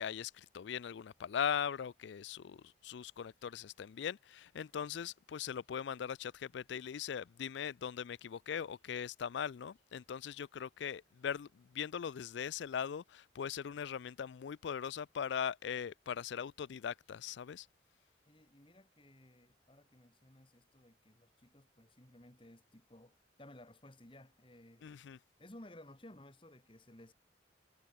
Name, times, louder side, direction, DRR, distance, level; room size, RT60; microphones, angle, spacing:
voice 1, 0.0-17.7 24.8-25.2, left 7 dB, 70° left, 0.4 m, -40 dB
voice 2, 18.3-24.9 25.4-27.1, left 1 dB, 25° left, 2.0 m, -57 dB
head